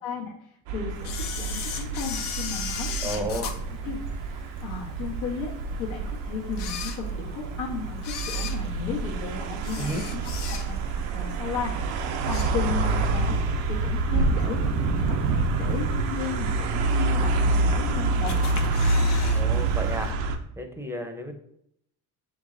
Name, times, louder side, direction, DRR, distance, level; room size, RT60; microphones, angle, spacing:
voice 1, 0.0-3.2 3.8-4.0 4.2-5.5 5.8-13.4 13.7-15.2 15.6-18.4, left 6 dB, 80° left, -5 dB, 1.2 m, -35 dB
sound 1, 0.7-20.4, right 3 dB, 75° right, 0.7 m, -27 dB
Camera, 1.0-4.6 5.1-5.2 5.9-6.0 6.5-7.5 8.0-11.0 11.3-11.6 12.0-13.0 13.4-13.5 14.4-14.5 15.1-15.5 15.9-16.0 16.2-16.3 16.5-16.6 17.3-17.8 18.3-19.4 19.7-19.8 20.0-20.1, left 7 dB, 60° left, 0.7 m, -36 dB
voice 2, 3.0-3.5 9.7-10.0 19.3-20.1 20.6-21.3, equal, 5° right, 5 dB, 0.7 m, -32 dB
5.2 x 3.1 x 2.6 m, 0.72 s
supercardioid pair, 75°, 45 cm